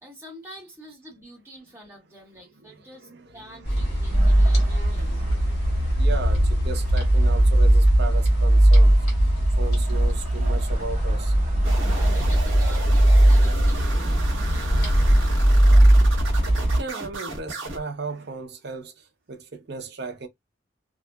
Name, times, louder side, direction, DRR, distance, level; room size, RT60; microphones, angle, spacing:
voice 1, 0.0-5.2 11.9-16.0, equal, 10° right, 1.2 m, -46 dB
voice 2, 2.4-9.1 9.6-11.4 16.6-20.3, right 3 dB, 55° right, 0.7 m, -36 dB
sound 1, 3.7-16.8, right 1 dB, 55° left, 1.4 m, -19 dB
Wood, 4.1-13.0, right 1 dB, 40° right, 1.1 m, -45 dB
sound 2, 11.6-17.8, right 2 dB, 70° right, 1.1 m, -34 dB
2.8 x 2.3 x 2.2 m
head